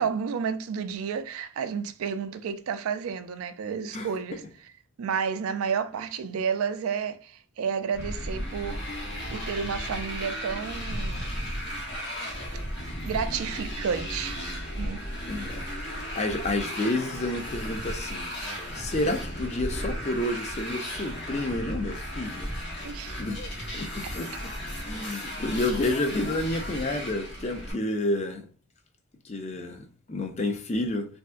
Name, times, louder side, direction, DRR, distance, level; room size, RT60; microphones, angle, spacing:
voice 1, 0.0-4.4 5.0-8.8 9.3-11.3 13.0-14.4 14.8-15.0 22.8-23.3, right 6 dB, 90° right, 0.4 m, -31 dB
Motorcycle, 7.9-27.7, equal, 55° left, 0.9 m, -35 dB
voice 2, 15.2-15.6 15.9-22.5 23.2-24.5 24.8-28.5 29.2-31.1, left 1 dB, 30° left, 0.4 m, -30 dB
3.3 x 2.7 x 2.2 m
head